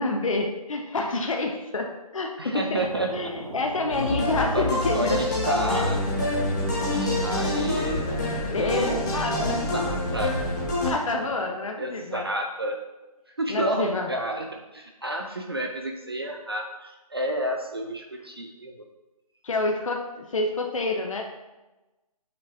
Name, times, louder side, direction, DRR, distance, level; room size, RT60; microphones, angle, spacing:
voice 1, 0.0-2.8 3.1-5.2 5.7-5.8 8.5-9.6 10.8-12.2 13.5-14.1 19.4-21.2, left 2 dB, 55° left, 2 dB, 0.7 m, -28 dB
voice 2, 2.4-3.3 4.1-4.3 4.5-6.0 6.9-8.0 8.6-9.1 9.7-10.4 11.8-12.8 13.4-18.8, right 1 dB, 40° right, 3 dB, 0.4 m, -31 dB
sound 1, 2.7-11.4, right 2 dB, 70° right, 1.2 m, -41 dB
sound 2, 3.9-10.9, left 1 dB, 30° left, 1.5 m, -26 dB
7.3 x 5.9 x 2.5 m, 1.1 s
hypercardioid pair, 175°, 20 cm